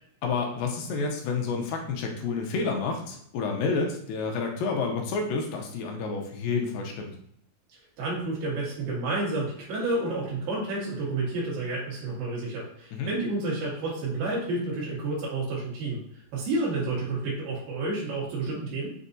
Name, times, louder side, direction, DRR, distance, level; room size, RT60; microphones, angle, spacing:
voice 1, 0.2-7.1 12.9-13.1, left 4 dB, 80° left, 2 dB, 2.4 m, -29 dB
voice 2, 8.0-16.0 16.3-18.9, right 2 dB, 85° right, -5 dB, 3.6 m, -30 dB
7.5 x 2.7 x 2.6 m, 0.68 s
omnidirectional pair, 4.0 m